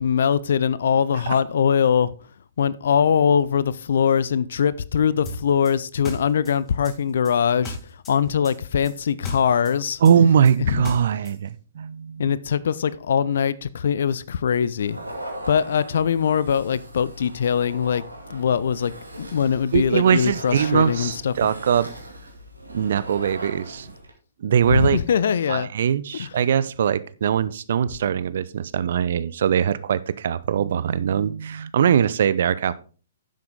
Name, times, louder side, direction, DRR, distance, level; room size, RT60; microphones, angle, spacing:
voice 1, 0.0-2.1 2.6-7.8 8.1-10.0 10.7-10.8 12.2-15.0 15.5-18.0 18.3-21.5 24.7-25.7 26.1-26.3, left 7 dB, 55° left, 0.5 m, -22 dB
sound 1, 5.3-8.2 8.4-11.4, left 2 dB, 15° left, 2.2 m, -37 dB
voice 2, 10.0-12.3 19.7-21.9 22.7-23.9 24.4-25.0 25.5-32.7, right 8 dB, 50° right, 0.6 m, -21 dB
sound 2, 14.8-24.1, right 1 dB, 80° right, 2.4 m, -39 dB
10.5 x 7.6 x 3.8 m
figure-of-eight pair, 120°, 0 cm